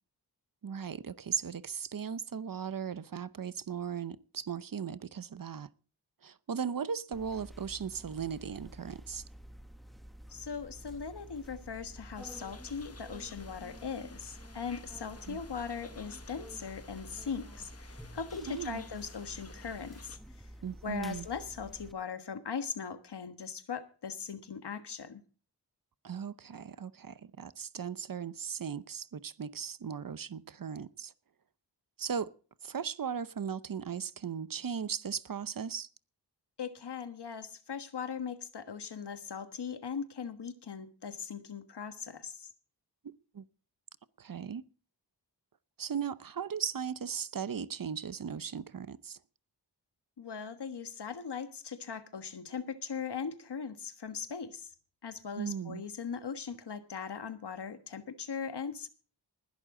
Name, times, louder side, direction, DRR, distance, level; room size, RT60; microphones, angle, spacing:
voice 1, 0.6-5.7 6.2-9.2 15.3-15.4 18.5-18.8 20.6-21.3 26.0-31.1 32.0-32.3 32.6-35.9 43.0-43.4 44.2-44.6 45.8-49.2 55.4-55.8, right 7 dB, 50° right, 0.7 m, -37 dB
sound 1, 7.1-21.9, equal, ahead, 1.1 m, -50 dB
voice 2, 10.3-20.2 20.8-25.2 36.6-42.5 50.2-54.7 55.0-58.9, left 6 dB, 70° left, 1.5 m, -39 dB
sound 2, 12.1-20.2, left 4 dB, 35° left, 1.1 m, -55 dB
20.0 x 11.5 x 3.8 m
wide cardioid pair, 95°, 42 cm